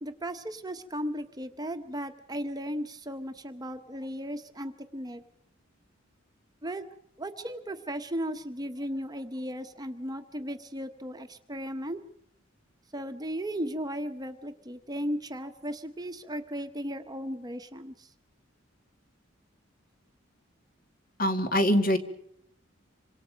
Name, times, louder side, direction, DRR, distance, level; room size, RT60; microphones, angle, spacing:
voice 1, 0.0-5.2 6.6-6.9 7.2-12.0 12.9-18.1, equal, 20° right, 8 dB, 1.1 m, -36 dB
voice 2, 21.2-22.0, equal, 45° left, 7 dB, 2.1 m, -23 dB
27.5 x 25.5 x 5.2 m, 0.71 s
head